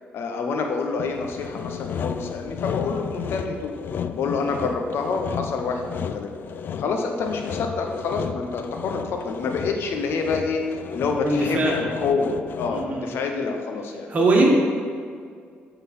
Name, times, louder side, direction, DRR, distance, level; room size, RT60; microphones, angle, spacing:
voice 1, 0.1-3.7 4.1-6.3 6.8-10.6 10.9-14.1, left 4 dB, 70° left, 3 dB, 0.9 m, -27 dB
Sawing, 1.0-13.0, left 7 dB, 55° left, 0.3 m, -33 dB
voice 2, 11.2-11.8 12.7-13.1 14.1-14.5, right 2 dB, 35° right, -2 dB, 1.6 m, -20 dB
8.0 x 4.0 x 5.5 m, 2.1 s
cardioid pair, 115°, 4 cm